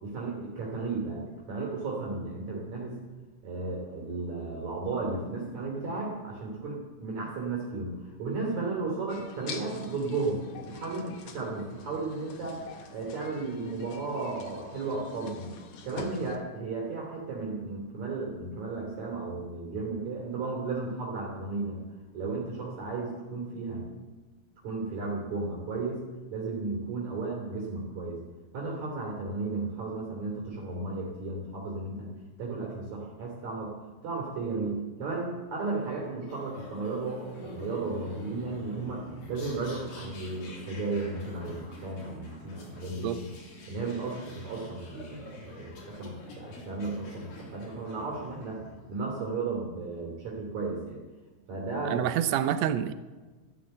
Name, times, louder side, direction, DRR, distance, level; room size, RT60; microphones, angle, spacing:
voice 1, 0.0-3.0 3.4-12.6 12.9-15.5 15.8-21.8 22.1-23.9 24.6-26.0 26.3-28.2 28.5-32.1 32.4-33.7 34.0-39.0 39.3-43.2 43.7-48.6 48.9-51.0 51.5-52.1, right 3 dB, 55° right, -2 dB, 4.1 m, -34 dB
sound 1, 9.1-16.4, left 5 dB, 55° left, 2.4 m, -45 dB
sound 2, 36.3-49.0, left 2 dB, 75° left, 5.0 m, -46 dB
voice 2, 51.8-52.9, right 10 dB, 75° right, 12 dB, 1.6 m, -27 dB
13.5 x 13.0 x 7.7 m, 1.3 s
omnidirectional pair, 4.0 m